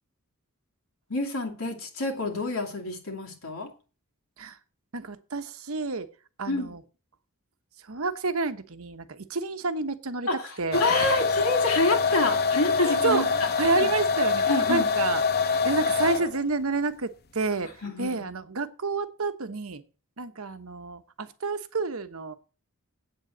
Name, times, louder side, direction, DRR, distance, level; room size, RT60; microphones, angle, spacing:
voice 1, 1.1-3.7 6.5-6.7 10.3-13.3 13.7-13.9 14.5-14.9 17.8-18.2, left 2 dB, 70° left, 2 dB, 2.6 m, -28 dB
voice 2, 4.9-6.1 6.4-6.8 7.9-10.3 10.6-11.1 12.8-17.7 18.0-19.8 20.2-22.3, right 4 dB, 70° right, 10 dB, 1.0 m, -29 dB
sound 1, 10.7-16.4, left 5 dB, 45° left, 0.8 m, -25 dB
8.7 x 7.7 x 7.8 m, 0.37 s
head